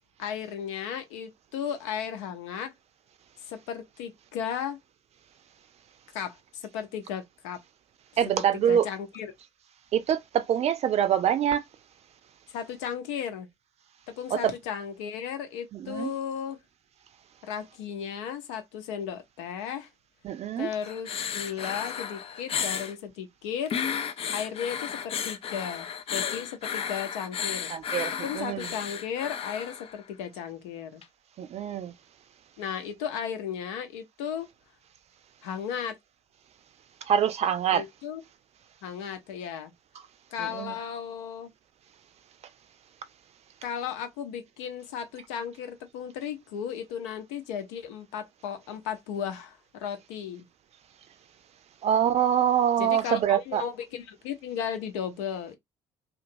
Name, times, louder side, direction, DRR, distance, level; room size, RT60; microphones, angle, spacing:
voice 1, 0.2-2.7 3.4-4.8 6.1-7.6 8.4-9.3 12.5-13.5 14.2-16.6 17.4-19.9 20.6-23.8 24.3-27.7 28.2-31.0 32.6-34.5 35.4-36.0 37.7-38.2 38.8-39.7 40.3-41.5 43.6-50.5 52.8-55.6, left 8 dB, 65° left, 0.8 m, -35 dB
voice 2, 8.2-8.9 9.9-11.6 14.3-14.5 15.7-16.1 20.2-20.7 27.7-28.7 31.4-31.9 37.1-37.8 40.4-40.7 51.8-53.6, right 9 dB, 40° right, 0.6 m, -25 dB
Claire Breathing B, 20.8-22.9 23.7-30.0 31.0-31.1, left 8 dB, 35° left, 0.5 m, -33 dB
2.9 x 2.5 x 2.6 m
figure-of-eight pair, 55°, 16 cm